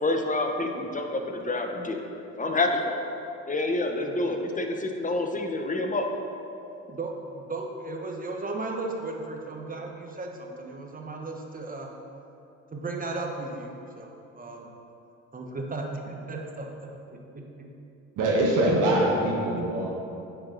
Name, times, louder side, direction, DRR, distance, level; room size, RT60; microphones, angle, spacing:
voice 1, 0.0-2.0 2.4-3.1 3.5-6.1, left 2 dB, 25° left, 4 dB, 0.9 m, -28 dB
voice 2, 6.9-11.9 12.7-14.1 14.4-14.7 15.3-17.7 18.7-18.9 19.6-19.7, right 3 dB, 25° right, 1 dB, 1.2 m, -35 dB
voice 3, 18.2-19.9, right 1 dB, 60° right, -2 dB, 1.3 m, -23 dB
8.8 x 4.6 x 3.9 m, 2.7 s
hypercardioid pair, 65°, 35 cm